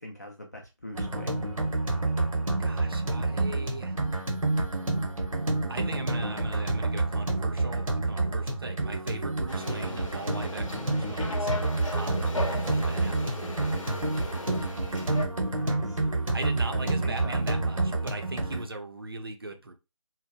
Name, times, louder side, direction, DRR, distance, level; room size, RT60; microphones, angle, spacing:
voice 1, 0.0-1.4 15.5-16.0 16.7-17.4, left 1 dB, 30° left, 0.4 m, -42 dB
sound 1, 0.9-18.6, right 2 dB, 90° right, 0.9 m, -28 dB
voice 2, 2.6-4.0 5.7-11.5 11.9-13.3 16.3-19.7, right 2 dB, 45° right, 0.4 m, -39 dB
sound 2, 9.5-15.3, left 2 dB, 75° left, 0.7 m, -37 dB
2.7 x 2.0 x 2.3 m
figure-of-eight pair, 160°, 17 cm